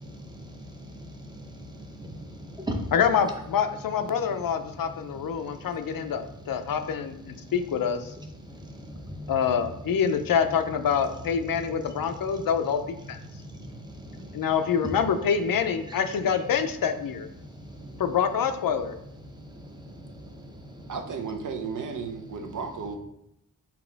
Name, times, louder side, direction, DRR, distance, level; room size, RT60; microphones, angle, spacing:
voice 1, 0.0-2.9 5.5-5.6 8.5-9.3 13.3-14.4 17.4-17.9 19.4-20.9, equal, 10° right, 2 dB, 0.6 m, -40 dB
voice 2, 2.9-8.1 9.3-13.2 14.3-17.3 18.0-18.9, left 7 dB, 75° left, 8 dB, 0.5 m, -26 dB
voice 3, 20.9-23.0, right 5 dB, 60° right, 5 dB, 0.6 m, -34 dB
4.1 x 2.9 x 4.5 m, 0.77 s
wide cardioid pair, 140°, 35 cm